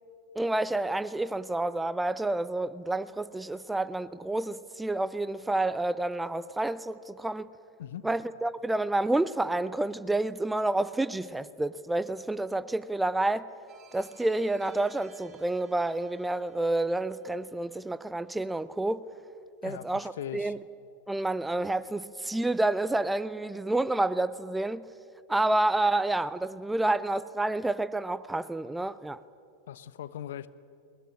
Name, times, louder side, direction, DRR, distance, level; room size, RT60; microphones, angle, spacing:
voice 1, 0.4-7.5 8.0-13.5 13.9-19.0 19.6-20.6 21.1-24.8 25.3-29.2, right 2 dB, 5° right, 0.7 m, -29 dB
sound 1, 13.7-18.4, right 5 dB, 20° right, 7.4 m, -58 dB
voice 2, 19.6-20.5 29.7-30.5, left 10 dB, 60° left, 0.9 m, -40 dB
21.5 x 20.5 x 9.8 m
figure-of-eight pair, 90°, 0 cm